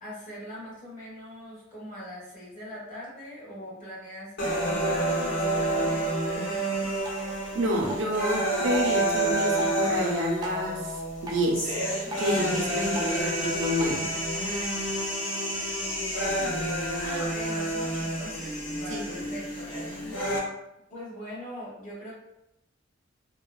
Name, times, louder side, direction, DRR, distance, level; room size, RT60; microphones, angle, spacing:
voice 1, 0.0-6.9 17.0-19.7 20.9-22.1, equal, 40° left, -7 dB, 1.1 m, -41 dB
sound 1, 4.4-20.4, right 1 dB, 85° left, 0.8 m, -29 dB
Drip, 7.0-14.0, equal, 20° right, 0.4 m, -44 dB
voice 2, 7.5-14.1 18.9-19.3, equal, 70° right, 0 dB, 0.6 m, -29 dB
2.7 x 2.1 x 2.2 m, 0.84 s
head